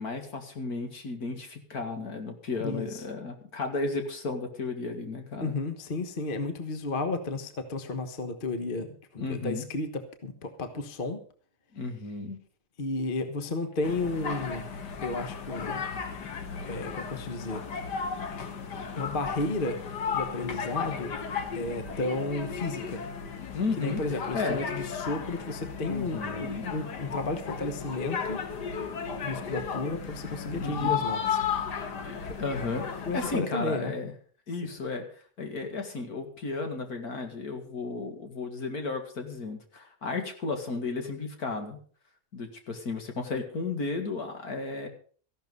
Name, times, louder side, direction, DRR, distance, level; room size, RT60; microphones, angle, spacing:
voice 1, 0.0-5.6 9.2-9.6 11.7-12.4 23.5-24.6 25.8-26.7 30.6-31.0 32.0-34.1 34.5-35.1 35.4-41.8 42.3-44.9, left 3 dB, 65° left, 5 dB, 2.5 m, -34 dB
voice 2, 2.6-3.0 5.4-11.2 12.8-14.7 15.0-15.8 16.7-17.6 19.0-19.8 20.1-21.1 21.5-23.0 23.8-28.4 29.2-31.4 33.0-33.9, left 2 dB, 35° left, 8 dB, 1.3 m, -33 dB
sound 1, 13.8-33.3, left 6 dB, 80° left, 2.0 m, -34 dB
14.5 x 11.5 x 5.3 m, 0.43 s
omnidirectional pair, 1.8 m